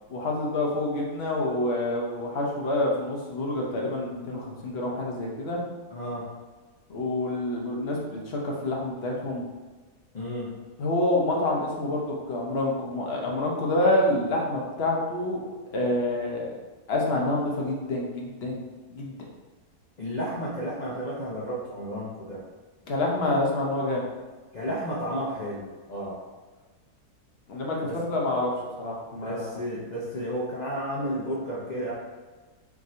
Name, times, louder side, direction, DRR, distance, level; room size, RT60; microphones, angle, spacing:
voice 1, 0.1-5.6 6.9-9.5 10.8-15.4 15.7-16.6 16.9-18.6 18.9-19.2 22.9-24.1 27.5-29.6, left 1 dB, 50° left, -2 dB, 0.8 m, -27 dB
voice 2, 5.9-6.3 10.1-10.5 20.0-22.4 24.5-26.2 27.9-28.0 29.2-31.9, equal, 70° left, -7 dB, 0.4 m, -32 dB
3.6 x 2.6 x 4.2 m, 1.3 s
omnidirectional pair, 1.8 m